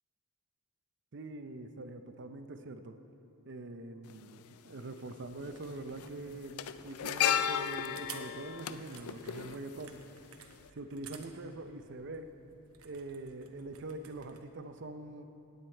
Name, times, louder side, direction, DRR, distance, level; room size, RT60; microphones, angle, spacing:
voice 1, 1.1-3.0 3.5-10.0 10.7-12.3 12.8-15.2, right 2 dB, 55° right, 8 dB, 0.6 m, -44 dB
sound 1, 4.1-4.2 5.4-5.7 5.9-10.2 10.5-10.7, left 9 dB, 75° left, 0.4 m, -34 dB
sound 2, 5.2-14.4, right 8 dB, 75° right, 0.9 m, -55 dB
18.0 x 8.1 x 4.5 m, 3.0 s
head